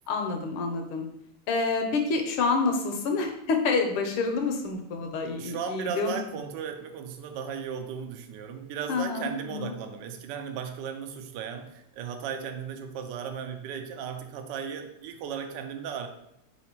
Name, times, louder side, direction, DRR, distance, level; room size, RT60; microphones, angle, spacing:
voice 1, 0.1-1.0 1.5-6.2 8.9-9.7, left 4 dB, 75° left, 4 dB, 1.4 m, -28 dB
voice 2, 5.4-16.1, right 7 dB, 80° right, 5 dB, 1.0 m, -36 dB
3.6 x 2.9 x 4.2 m, 0.78 s
omnidirectional pair, 2.4 m